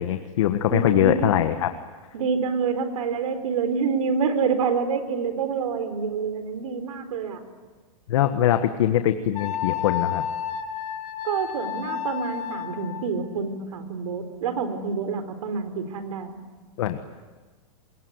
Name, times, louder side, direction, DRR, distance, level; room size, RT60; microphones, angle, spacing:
voice 1, 0.0-1.7 8.1-10.2 16.8-17.0, left 11 dB, 55° left, 8 dB, 1.5 m, -22 dB
voice 2, 0.7-1.3 2.1-7.4 11.2-16.4, right 5 dB, 75° right, 9 dB, 4.4 m, -27 dB
Wind instrument woodwind instrument, 9.3-13.1, left 10 dB, 80° left, 3.6 m, -31 dB
27.0 x 22.0 x 9.7 m, 1.4 s
supercardioid pair, 170°, 18 cm